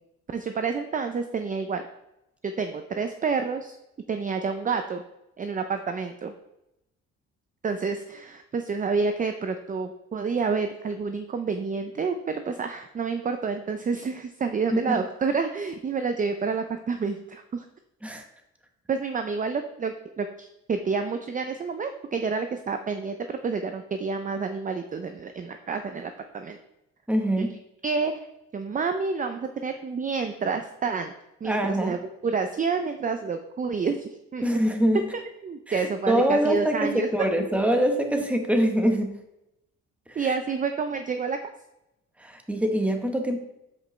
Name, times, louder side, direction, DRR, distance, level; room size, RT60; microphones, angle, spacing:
voice 1, 0.3-1.8 2.4-3.8 4.1-5.0 5.4-6.3 7.6-17.7 18.9-26.6 27.8-28.1 28.5-31.1 31.4-32.0 32.2-34.4 35.4-37.1 40.2-41.4, right 5 dB, 25° right, 7 dB, 0.5 m, -29 dB
voice 2, 14.7-15.0 18.0-18.2 27.1-27.5 31.4-32.0 34.4-35.0 35.7-39.1 40.1-40.3 42.2-43.4, equal, 5° right, 4 dB, 1.0 m, -24 dB
7.6 x 5.2 x 3.2 m, 0.87 s
cardioid pair, 90°, 30 cm